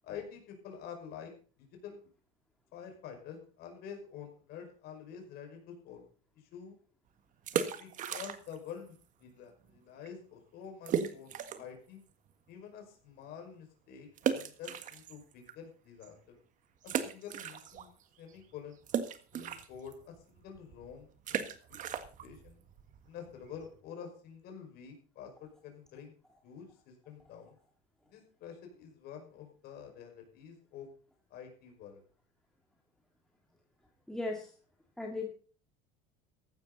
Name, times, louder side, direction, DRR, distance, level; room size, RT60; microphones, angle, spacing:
voice 1, 0.0-1.3 1.8-2.0 2.7-6.1 6.5-6.8 7.5-11.3 11.6-12.0 12.5-16.4 16.8-17.9 18.2-18.8 19.3-21.4 22.2-22.6 23.1-26.1 26.4-27.6 28.1-30.9 31.3-32.0, left 7 dB, 55° left, 3 dB, 5.5 m, -48 dB
sound 1, 7.3-8.7 9.0-9.1 9.7-9.8 10.0-10.1 10.9-11.8 12.3-12.4 14.2-15.5 16.0-16.1 16.8-18.0 18.3-23.8, right 8 dB, 40° right, 1.6 m, -36 dB
voice 2, 34.1-34.5 35.0-35.3, left 2 dB, 5° left, 0 dB, 2.0 m, -36 dB
15.0 x 12.0 x 4.1 m, 0.40 s
supercardioid pair, 125°, 20 cm